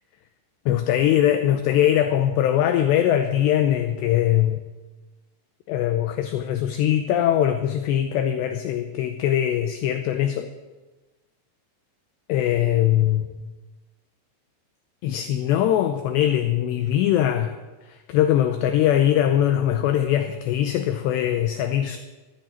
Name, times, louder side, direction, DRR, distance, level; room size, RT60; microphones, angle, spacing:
voice 1, 0.7-4.6 5.7-10.5 12.3-13.5 15.0-17.6 17.8-22.0, left 11 dB, 85° left, 8 dB, 2.4 m, -21 dB
13.5 x 8.6 x 8.9 m, 1.2 s
omnidirectional pair, 5.8 m